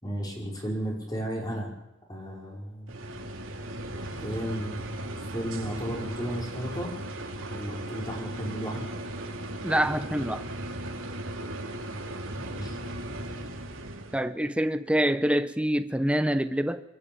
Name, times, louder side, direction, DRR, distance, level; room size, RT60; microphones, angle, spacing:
voice 1, 0.0-1.7 2.1-2.9 4.2-4.9 5.2-6.9 7.5-8.9 12.1-12.8, equal, 20° left, 5.6 m, -34 dB
sound 1, 2.9-14.2, right 1 dB, 85° right, 3.4 m, -37 dB
voice 2, 9.6-10.4 14.1-16.8, right 1 dB, 5° right, 0.9 m, -26 dB
23.5 x 14.5 x 8.9 m
head